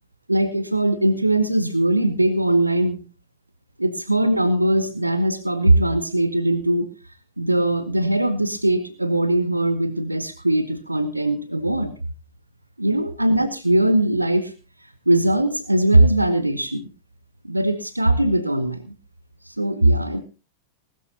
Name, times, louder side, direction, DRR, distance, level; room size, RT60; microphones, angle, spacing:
voice 1, 0.3-3.0 3.8-6.9 7.4-11.9 12.8-14.5 15.1-16.9 17.4-18.9 19.5-20.2, right 1 dB, 85° right, 12 dB, 1.0 m, -20 dB
19.5 x 13.0 x 2.9 m, 0.30 s
figure-of-eight pair, 90°, 0 cm